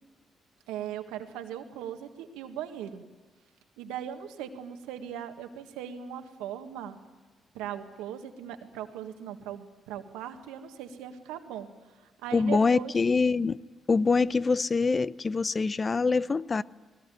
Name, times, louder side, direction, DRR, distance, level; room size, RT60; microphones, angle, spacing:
voice 1, 0.7-3.0 3.8-7.0 7.5-11.7 12.0-12.9, right 9 dB, 80° right, 1.7 m, -39 dB
voice 2, 12.3-13.6 13.9-16.6, left 4 dB, 40° left, 0.7 m, -24 dB
21.0 x 19.0 x 9.3 m
hypercardioid pair, 45°, 0 cm